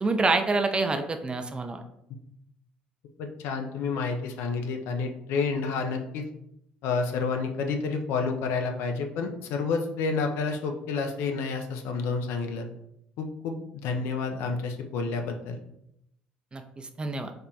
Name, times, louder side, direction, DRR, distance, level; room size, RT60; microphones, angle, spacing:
voice 1, 0.0-1.8 16.5-17.3, right 3 dB, 20° right, 6 dB, 0.3 m, -27 dB
voice 2, 3.2-6.2 6.8-12.7 13.2-15.6, left 4 dB, 60° left, 4 dB, 0.4 m, -29 dB
3.3 x 2.1 x 2.7 m, 0.79 s
figure-of-eight pair, 55°, 5 cm